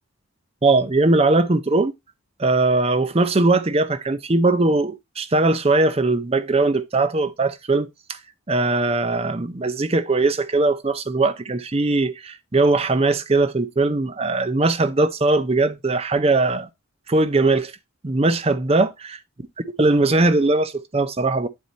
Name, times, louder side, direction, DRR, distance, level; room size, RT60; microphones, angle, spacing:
voice 1, 0.6-1.9 2.4-8.2 8.5-16.7 17.1-17.7 18.0-18.9 19.8-21.5, right 2 dB, 25° right, 0.5 m, -20 dB
9.3 x 4.2 x 4.0 m
head